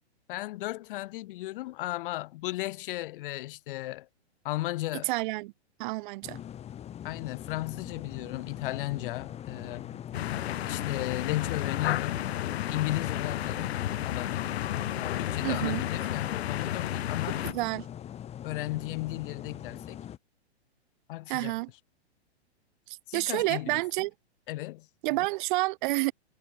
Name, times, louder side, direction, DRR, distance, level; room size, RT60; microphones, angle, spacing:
voice 1, 0.3-4.1 4.4-5.1 7.0-10.0 10.7-13.7 14.0-14.5 15.2-17.4 18.4-20.0 21.1-21.6 23.1-23.8 24.5-24.9, left 17 dB, 50° left, 2.2 m, -35 dB
voice 2, 5.1-5.5 5.8-6.4 15.4-15.8 17.4-17.9 21.3-21.7 22.9-24.1 25.0-26.1, right 21 dB, 45° right, 2.7 m, -29 dB
sound 1, 6.2-20.2, left 10 dB, 20° left, 1.7 m, -42 dB
sound 2, 10.1-17.5, left 12 dB, 70° left, 1.1 m, -32 dB
hypercardioid pair, 135°, 33 cm